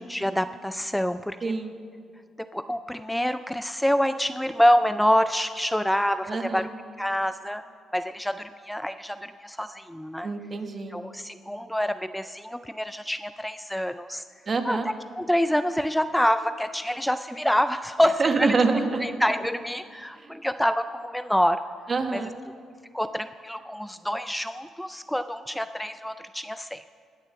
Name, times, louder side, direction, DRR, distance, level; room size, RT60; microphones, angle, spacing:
voice 1, 0.0-1.4 2.4-6.7 7.0-7.6 7.9-10.3 10.9-14.2 14.6-18.5 19.0-21.6 22.1-22.2 22.9-26.9, equal, 5° left, 11 dB, 0.3 m, -26 dB
voice 2, 1.4-1.8 6.3-6.7 10.2-11.0 14.5-14.9 18.2-19.0 20.2-20.3 21.9-22.3, right 4 dB, 40° right, 6 dB, 1.3 m, -26 dB
20.0 x 7.1 x 6.7 m, 2.2 s
cardioid pair, 90°, 0 cm